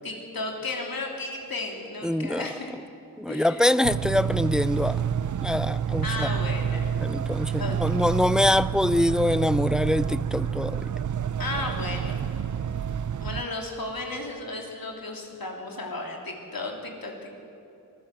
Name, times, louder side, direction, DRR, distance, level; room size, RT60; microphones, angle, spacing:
voice 1, 0.0-2.7 3.3-3.7 6.0-6.9 7.6-7.8 11.4-12.3 13.2-17.4, left 2 dB, 70° left, 1 dB, 3.4 m, -34 dB
voice 2, 2.0-2.4 3.2-5.0 5.4-6.3 7.0-10.8, left 1 dB, ahead, 17 dB, 0.4 m, -24 dB
sound 1, 3.8-13.4, right 8 dB, 55° right, 0.5 m, -28 dB
23.0 x 15.0 x 7.7 m, 2.9 s
wide cardioid pair, 85°, 36 cm